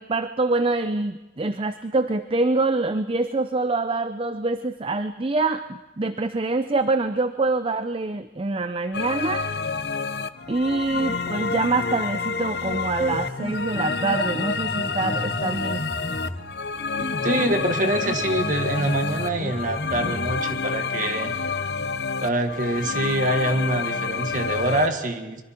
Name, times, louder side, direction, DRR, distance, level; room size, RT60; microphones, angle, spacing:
voice 1, 0.0-9.5 10.5-15.8, right 3 dB, 30° right, 10 dB, 0.6 m, -25 dB
sound 1, 8.9-24.9, left 5 dB, 70° left, 0.8 m, -28 dB
Piano, 12.8-20.8, left 1 dB, 35° left, 2.2 m, -34 dB
voice 2, 17.2-21.3 22.2-25.4, right 1 dB, 50° right, 6 dB, 1.7 m, -25 dB
25.0 x 23.0 x 4.6 m, 1.1 s
head